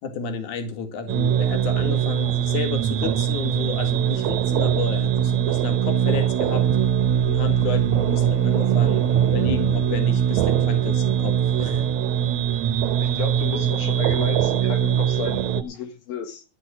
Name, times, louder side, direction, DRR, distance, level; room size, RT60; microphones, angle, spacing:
voice 1, 0.0-6.7 7.3-11.8, left 5 dB, 60° left, 3.5 m, -31 dB
sound 1, 1.1-15.6, right 10 dB, 70° right, 2.0 m, -21 dB
voice 2, 13.0-16.4, left 7 dB, 85° left, 3.4 m, -33 dB
13.5 x 6.7 x 7.6 m
omnidirectional pair, 4.0 m